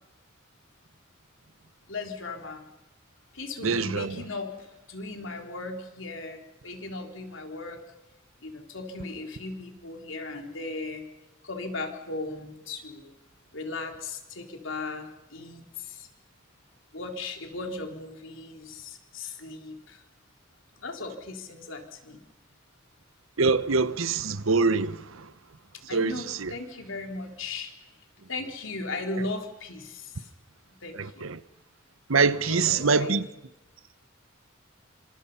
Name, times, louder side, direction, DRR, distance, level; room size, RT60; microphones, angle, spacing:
voice 1, 1.9-2.7 3.3-7.8 8.4-11.1 11.4-13.1 13.5-16.1 16.9-20.0 20.8-22.2 25.8-27.7 28.3-30.3 30.8-31.3 32.4-33.2, left 3 dB, 65° left, 4.1 m, -37 dB
voice 2, 3.6-4.2 23.4-25.0 25.9-26.5 31.0-31.4 32.1-33.2, right 4 dB, 80° right, 1.0 m, -24 dB
28.0 x 26.0 x 5.7 m
head